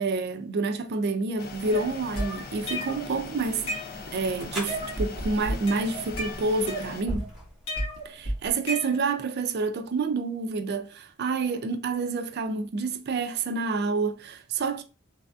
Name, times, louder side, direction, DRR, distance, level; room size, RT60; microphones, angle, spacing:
voice 1, 0.0-3.6 4.1-7.3 8.0-14.8, right 4 dB, 50° right, 0.4 m, -28 dB
sound 1, 1.4-7.0, left 3 dB, 45° left, 0.4 m, -41 dB
sound 2, 1.7-3.1 3.5-4.3 4.7-5.1 5.5-7.2 7.7-9.3, equal, 85° left, 1.2 m, -33 dB
sound 3, 3.4-8.7, equal, ahead, 0.9 m, -40 dB
3.3 x 2.4 x 2.3 m
head